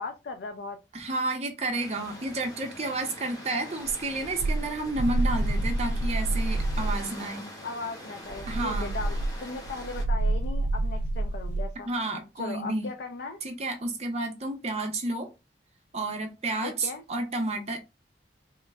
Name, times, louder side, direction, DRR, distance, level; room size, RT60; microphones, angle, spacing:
voice 1, 0.0-0.8 7.6-11.9 12.4-13.4 16.6-17.0, left 3 dB, 70° left, 0.4 m, -37 dB
voice 2, 0.9-7.4 8.5-8.9 11.8-12.9 13.4-15.3 15.9-17.8, right 2 dB, 35° right, 0.7 m, -31 dB
sound 1, 1.7-10.0, left 1 dB, 20° left, 0.8 m, -44 dB
sound 2, 3.9-7.1 8.3-11.7, right 2 dB, 75° right, 0.3 m, -28 dB
3.0 x 2.3 x 3.4 m
head